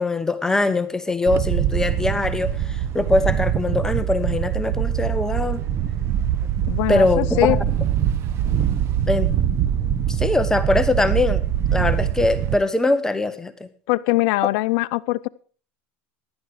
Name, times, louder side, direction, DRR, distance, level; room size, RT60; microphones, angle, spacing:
voice 1, 0.0-5.6 6.9-7.6 9.1-9.3 10.1-11.4 11.7-13.7, left 2 dB, 10° left, 11 dB, 1.0 m, -22 dB
Wind, 1.3-12.6, right 10 dB, 45° right, 1.2 m, -23 dB
voice 2, 6.7-7.6 13.9-15.3, left 19 dB, 65° left, 13 dB, 0.6 m, -21 dB
16.0 x 11.5 x 4.8 m, 0.40 s
supercardioid pair, 115°, 6 cm